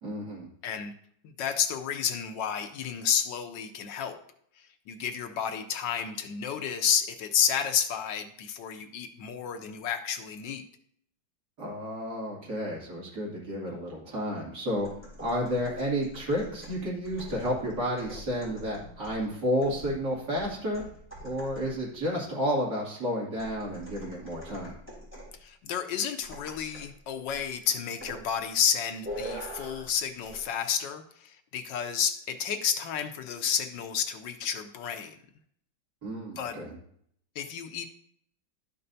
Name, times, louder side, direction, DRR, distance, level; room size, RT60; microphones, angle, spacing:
voice 1, 0.0-0.5 11.6-14.9 15.2-20.8 21.2-24.7 36.0-36.8, equal, 60° right, -5 dB, 3.0 m, -31 dB
voice 2, 1.4-4.2 4.9-10.6 25.4-35.2 36.4-36.6 37.4-37.9, left 8 dB, 75° left, 7 dB, 1.3 m, -31 dB
sound 1, 14.8-21.9 23.4-25.4 26.2-26.9 27.3-27.5 28.0-28.3 29.0-29.9 30.2-30.4, equal, 5° right, 3.1 m, -44 dB
12.0 x 5.5 x 2.7 m, 0.66 s
omnidirectional pair, 2.1 m